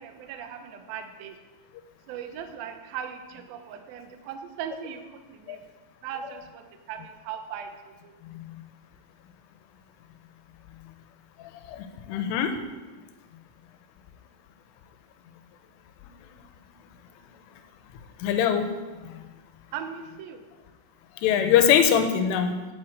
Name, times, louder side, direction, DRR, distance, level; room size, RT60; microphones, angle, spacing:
voice 1, 0.0-1.4 2.1-5.6 6.0-8.1 19.7-20.4, right 8 dB, 85° right, 6 dB, 2.1 m, -38 dB
voice 2, 11.7-12.5 18.2-18.7 19.1-19.2 21.2-22.6, left 8 dB, 90° left, 8 dB, 3.4 m, -22 dB
9.2 x 8.9 x 7.9 m, 1.3 s
omnidirectional pair, 5.6 m